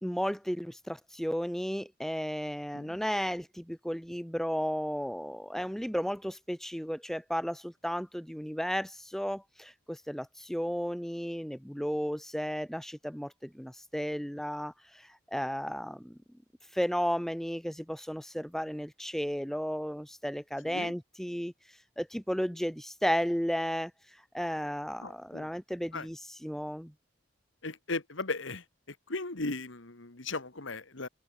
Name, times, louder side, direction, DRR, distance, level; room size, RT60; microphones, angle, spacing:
voice 1, 0.0-16.2 16.7-26.9, equal, ahead, 1.6 m, -34 dB
voice 2, 25.0-25.4 25.9-26.0 27.6-28.6 29.1-31.1, left 3 dB, 70° left, 2.0 m, -36 dB
head